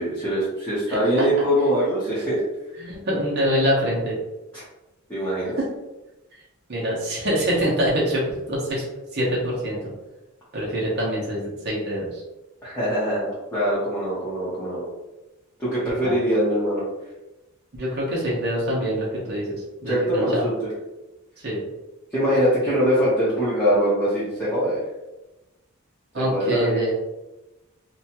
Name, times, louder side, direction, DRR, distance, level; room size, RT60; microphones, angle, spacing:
voice 1, 0.0-2.4 4.5-4.6 5.1-5.6 12.6-14.9 15.6-16.8 19.9-20.5 22.1-24.8 26.2-26.8, equal, 10° left, -12 dB, 0.8 m, -22 dB
voice 2, 2.8-4.2 5.6-5.7 6.3-6.4 6.7-8.2 8.5-8.8 9.1-9.9 10.5-12.2 16.0-16.1 17.8-20.4 21.4-21.6 26.1-26.9, equal, 45° right, -6 dB, 0.8 m, -25 dB
2.7 x 2.3 x 2.8 m, 1.0 s
head